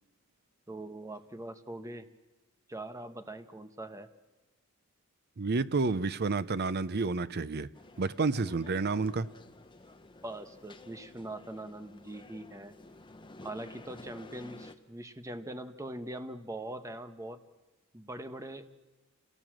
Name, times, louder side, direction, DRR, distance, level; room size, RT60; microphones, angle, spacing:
voice 1, 0.7-2.1 2.7-4.1 10.2-12.7 13.4-17.4 17.9-18.7, right 1 dB, 15° right, 9 dB, 1.0 m, -42 dB
voice 2, 5.4-7.7 8.0-9.3, right 3 dB, 50° right, 16 dB, 0.6 m, -30 dB
sound 1, 7.7-14.8, left 2 dB, 20° left, 0.9 m, -52 dB
27.5 x 17.5 x 7.6 m, 1.1 s
head